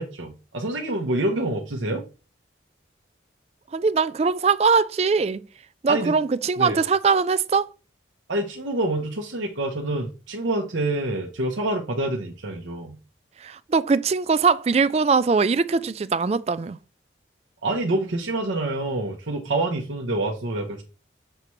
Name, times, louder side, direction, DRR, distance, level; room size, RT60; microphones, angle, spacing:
voice 1, 0.0-2.0 5.9-6.2 6.6-6.8 8.3-13.0 17.6-20.8, right 2 dB, 90° right, 0.9 m, -27 dB
voice 2, 3.7-5.4 5.8-7.7 13.4-16.8, right 5 dB, 35° right, 0.3 m, -21 dB
6.6 x 3.1 x 5.7 m
head